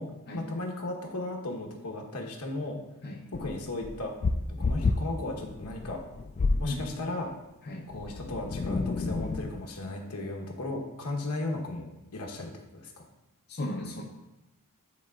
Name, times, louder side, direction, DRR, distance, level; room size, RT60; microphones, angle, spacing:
voice 1, 0.3-2.8 3.3-4.2 4.5-6.0 6.6-7.3 7.9-13.0, left 2 dB, 85° left, 0 dB, 1.1 m, -36 dB
sound 1, 3.3-6.7 7.9-9.6, left 3 dB, 30° left, 0.3 m, -30 dB
voice 2, 13.5-14.0, left 2 dB, 50° left, -2 dB, 0.7 m, -34 dB
10.0 x 4.1 x 2.4 m, 0.97 s
head